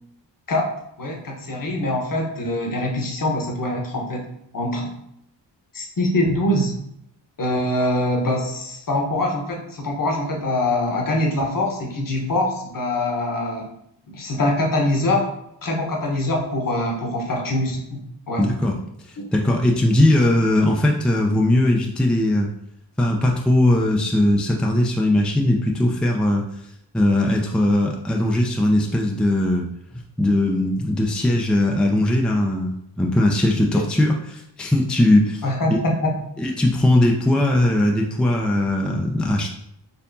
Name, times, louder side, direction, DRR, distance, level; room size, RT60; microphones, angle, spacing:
voice 1, 1.0-4.2 4.5-4.9 5.7-6.7 7.4-13.7 14.1-15.3 15.6-18.0 18.3-18.5 19.2-19.3 35.4-36.1, left 1 dB, 45° left, 0 dB, 1.1 m, -23 dB
voice 2, 18.4-18.8 19.0-22.5 23.0-26.5 26.9-29.7 29.9-35.4 35.7-35.8 36.4-39.5, left 1 dB, ahead, 1 dB, 0.5 m, -19 dB
4.4 x 2.7 x 2.7 m, 0.75 s
supercardioid pair, 40°, 45 cm